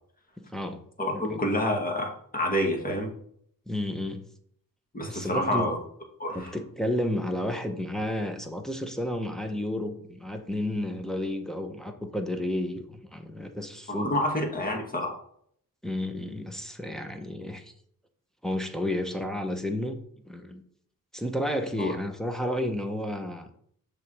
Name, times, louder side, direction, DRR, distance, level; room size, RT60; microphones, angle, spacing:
voice 1, 0.4-0.8 1.1-1.5 3.7-4.2 5.1-5.7 6.3-14.2 15.8-17.7 18.4-20.6 21.1-23.5, left 1 dB, ahead, 0.9 m, -31 dB
voice 2, 1.0-3.1 4.9-5.8 6.2-6.5 13.9-15.1 21.8-21.9, left 1 dB, 25° left, 1.8 m, -28 dB
6.9 x 3.5 x 6.2 m
cardioid pair, 80°, 34 cm